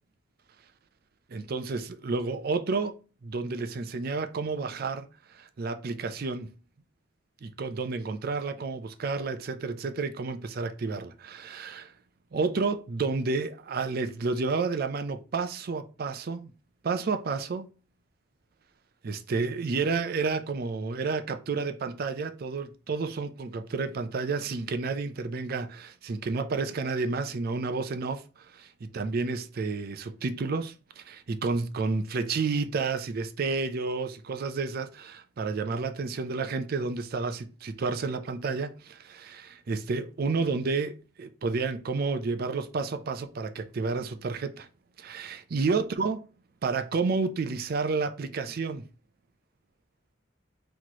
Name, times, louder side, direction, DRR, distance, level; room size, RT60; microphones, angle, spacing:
voice 1, 1.3-6.5 7.4-11.9 12.3-16.5 16.8-17.7 19.0-44.7 45.0-46.2 46.6-48.8, right 4 dB, 50° right, 0.4 m, -31 dB
4.3 x 3.0 x 2.8 m
head